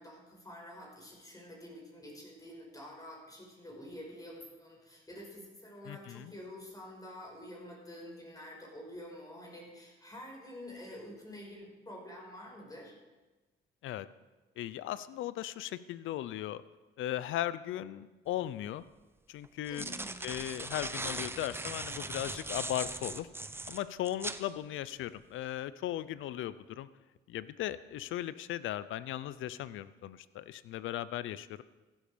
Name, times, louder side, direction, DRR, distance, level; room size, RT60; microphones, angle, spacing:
voice 1, 0.0-12.9 19.7-20.3, left 1 dB, 20° left, -1 dB, 5.6 m, -48 dB
voice 2, 5.9-6.3 13.8-14.1 14.6-16.6 17.0-18.8 19.3-19.8 20.2-23.3 23.7-26.9 27.3-31.6, left 13 dB, 80° left, 16 dB, 0.6 m, -37 dB
sound 1, 18.4-18.5 19.4-24.4, right 2 dB, 10° right, 0.8 m, -39 dB
15.0 x 12.0 x 5.1 m, 1.2 s
cardioid pair, 90°, 20 cm